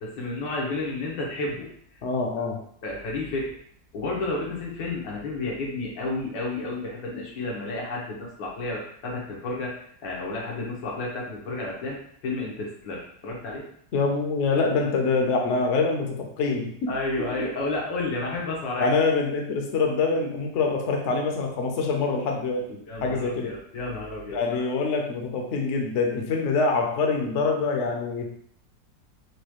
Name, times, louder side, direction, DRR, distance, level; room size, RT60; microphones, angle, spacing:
voice 1, 0.0-1.7 2.8-3.5 3.9-13.7 16.9-18.9 22.9-24.6, left 2 dB, 90° left, -3 dB, 1.7 m, -31 dB
voice 2, 2.0-2.6 13.9-16.9 18.8-23.6 24.3-28.3, left 4 dB, 60° left, 1 dB, 0.8 m, -25 dB
4.7 x 2.3 x 3.0 m, 0.62 s
omnidirectional pair, 2.0 m